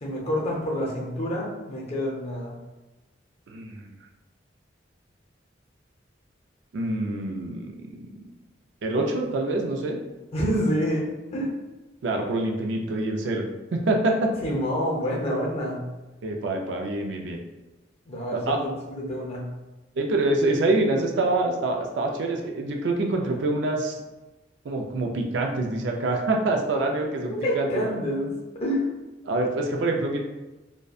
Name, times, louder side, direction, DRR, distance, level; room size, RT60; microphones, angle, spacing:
voice 1, 0.0-2.6 10.3-11.5 14.4-15.8 18.1-19.4 27.3-28.9, equal, 35° left, -3 dB, 0.5 m, -28 dB
voice 2, 3.5-3.9 6.7-8.2 8.8-10.0 12.0-13.5 13.7-14.3 16.2-17.4 18.3-18.6 20.0-24.0 24.7-27.9 29.2-30.2, right 2 dB, 70° right, 2 dB, 0.4 m, -26 dB
2.6 x 2.1 x 2.3 m, 1.1 s
head